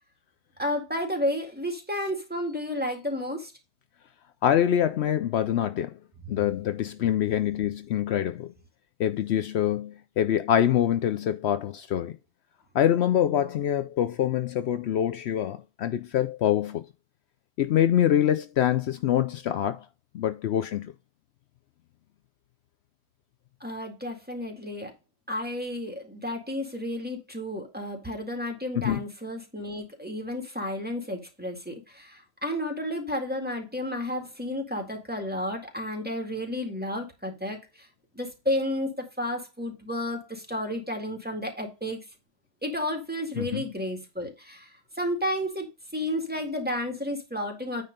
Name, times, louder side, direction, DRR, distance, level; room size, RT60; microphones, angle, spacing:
voice 1, 0.6-3.5 23.6-24.9 25.3-37.6 38.2-38.9 39.2-42.0 42.6-44.7 45.0-45.7 45.9-47.8, left 1 dB, 5° right, 1.9 m, -32 dB
voice 2, 4.4-5.9 6.3-8.5 9.0-12.1 12.7-16.8 17.6-19.8 20.1-20.9 28.7-29.0 43.4-43.7, left 10 dB, 85° left, 0.5 m, -25 dB
9.3 x 3.7 x 5.2 m
omnidirectional pair, 1.7 m